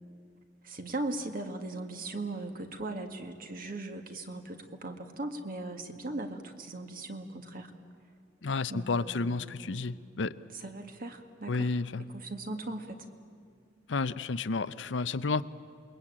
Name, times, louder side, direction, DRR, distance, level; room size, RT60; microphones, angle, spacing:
voice 1, 0.6-7.7 8.7-9.8 10.6-11.7 12.1-13.1, right 2 dB, 50° right, 6 dB, 1.9 m, -39 dB
voice 2, 8.4-10.4 11.5-12.0 13.9-15.4, left 3 dB, 75° left, 14 dB, 0.7 m, -31 dB
28.5 x 21.5 x 8.7 m, 2.3 s
head